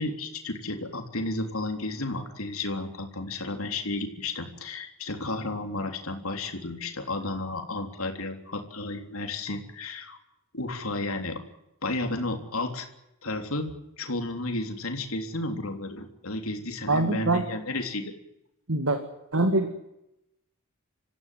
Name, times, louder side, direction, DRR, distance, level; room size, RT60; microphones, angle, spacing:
voice 1, 0.0-10.2 10.5-11.4 11.8-12.9 13.2-18.1, left 2 dB, 75° left, 4 dB, 3.6 m, -32 dB
voice 2, 16.9-17.4 18.7-19.0 19.3-19.7, right 2 dB, 80° right, 6 dB, 2.2 m, -23 dB
27.0 x 15.0 x 9.5 m, 0.88 s
head